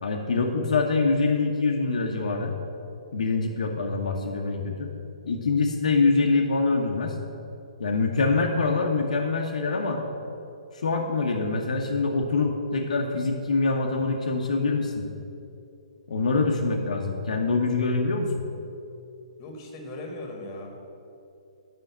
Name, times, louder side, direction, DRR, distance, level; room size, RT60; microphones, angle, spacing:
voice 1, 0.0-2.5 3.1-4.9 5.3-7.2 7.8-10.0 10.8-15.0 16.1-18.3, left 3 dB, 75° left, 1 dB, 1.0 m, -25 dB
voice 2, 19.4-20.7, left 2 dB, 30° left, 1 dB, 1.9 m, -38 dB
7.8 x 5.6 x 7.2 m, 2.7 s
hypercardioid pair, 145°, 4 cm